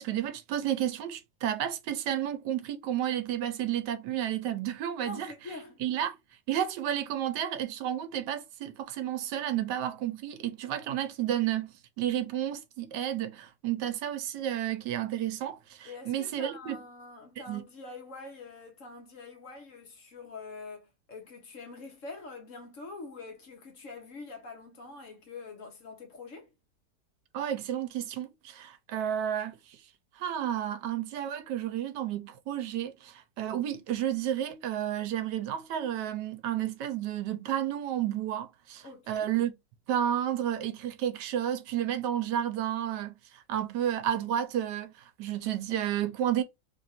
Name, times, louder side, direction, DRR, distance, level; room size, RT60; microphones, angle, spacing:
voice 1, 0.0-5.3 5.8-6.2 6.5-16.8 17.5-17.6 27.3-29.8 30.2-39.5 39.9-44.9 45.2-46.4, right 10 dB, 80° right, 1.2 m, -31 dB
voice 2, 5.0-5.9 15.8-26.5 38.8-39.3, left 3 dB, 55° left, 1.0 m, -45 dB
3.2 x 2.5 x 4.1 m
omnidirectional pair, 1.9 m